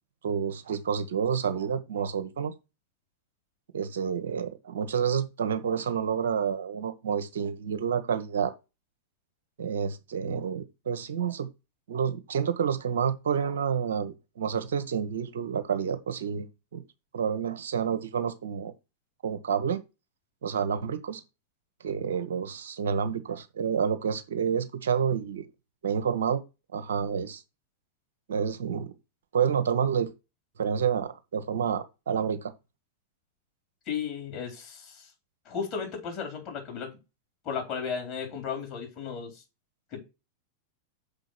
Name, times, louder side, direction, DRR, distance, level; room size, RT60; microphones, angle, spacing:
voice 1, 0.2-2.5 3.7-8.5 9.6-11.5 11.9-16.8 17.1-18.7 19.2-19.8 20.4-21.2 21.8-25.5 25.8-26.4 26.7-27.4 28.3-28.9 29.3-30.1 30.6-32.5, right 7 dB, 60° right, 1.1 m, -29 dB
voice 2, 33.9-35.1 35.5-37.0 37.4-39.4 39.9-40.0, left 6 dB, 40° left, 4.4 m, -34 dB
6.9 x 5.3 x 5.9 m
figure-of-eight pair, 90°, 0 cm